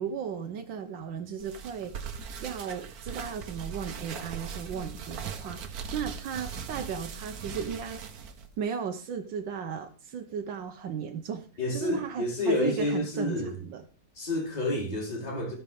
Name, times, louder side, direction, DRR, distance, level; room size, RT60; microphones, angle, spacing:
voice 1, 0.0-2.0 2.4-8.0 8.6-11.5 11.7-13.8, right 7 dB, 85° right, 5 dB, 1.6 m, -35 dB
sound 1, 1.4-8.5, right 6 dB, 60° right, 1.3 m, -39 dB
voice 2, 11.6-13.6 14.2-15.5, left 1 dB, 20° left, -1 dB, 2.7 m, -29 dB
15.5 x 5.8 x 3.5 m, 0.38 s
omnidirectional pair, 2.0 m